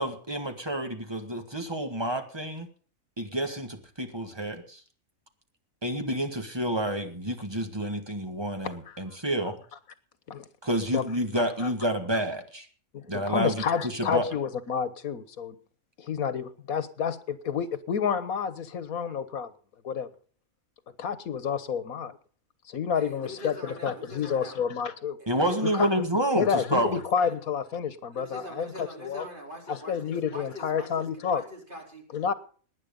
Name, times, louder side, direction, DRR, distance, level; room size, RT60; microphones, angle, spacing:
voice 1, 0.0-2.7 3.2-4.8 5.8-9.6 10.6-12.7 13.1-14.3 25.3-27.0, right 1 dB, 20° right, 6 dB, 1.9 m, -29 dB
voice 2, 8.6-9.0 10.3-10.5 10.9-11.0 11.6-11.7 12.9-15.6 16.0-19.5 19.8-20.1 21.0-22.2 22.7-25.2 25.6-26.0 26.3-29.3 29.7-31.4 32.1-32.3, left 7 dB, 90° left, 14 dB, 1.7 m, -29 dB
voice 3, 22.9-24.6 25.2-26.0 26.8-26.9 27.2-27.4 28.1-32.0, equal, 35° right, 1 dB, 4.3 m, -43 dB
19.0 x 9.9 x 5.4 m, 0.42 s
omnidirectional pair, 1.4 m